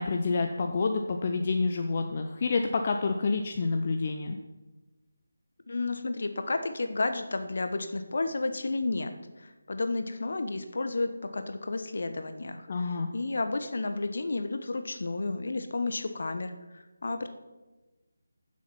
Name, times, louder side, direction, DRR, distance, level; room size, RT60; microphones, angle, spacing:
voice 1, 0.0-4.4 12.7-13.1, left 4 dB, 35° left, 4 dB, 0.8 m, -28 dB
voice 2, 5.7-9.1 9.4-17.3, left 3 dB, 50° left, 8 dB, 1.2 m, -32 dB
15.0 x 7.6 x 5.8 m, 1.2 s
figure-of-eight pair, 155°, 0 cm